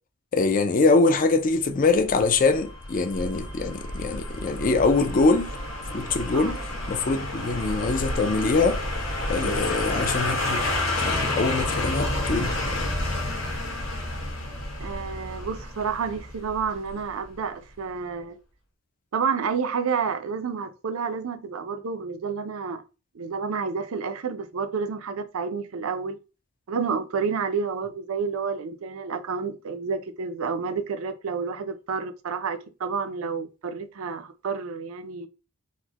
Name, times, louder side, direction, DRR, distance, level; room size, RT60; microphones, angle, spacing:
voice 1, 0.3-5.5 5.9-6.6 6.9-8.8 9.3-10.6 11.0-12.5, left 3 dB, 40° left, 0.4 m, -23 dB
sound 1, 1.8-12.9, right 1 dB, 15° left, 0.7 m, -42 dB
sound 2, 2.1-17.0 17.3-17.4, left 1 dB, 65° left, 1.3 m, -30 dB
voice 2, 14.8-18.4 19.1-22.8 23.1-26.2 26.7-35.3, right 5 dB, 75° right, 0.4 m, -30 dB
4.1 x 2.1 x 2.8 m
head